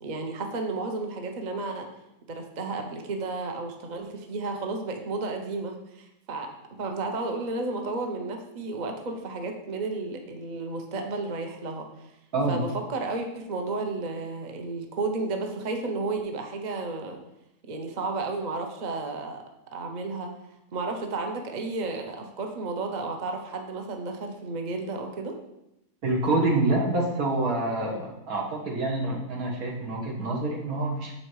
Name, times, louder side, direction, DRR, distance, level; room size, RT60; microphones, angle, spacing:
voice 1, 0.0-1.9 2.3-6.5 6.8-12.1 12.5-17.2 17.6-19.4 19.7-20.3 20.7-25.4, right 3 dB, 40° right, 4 dB, 0.7 m, -32 dB
voice 2, 12.3-12.6 26.0-31.1, right 2 dB, 70° right, -1 dB, 1.9 m, -27 dB
7.2 x 5.4 x 4.7 m, 0.86 s
omnidirectional pair, 1.6 m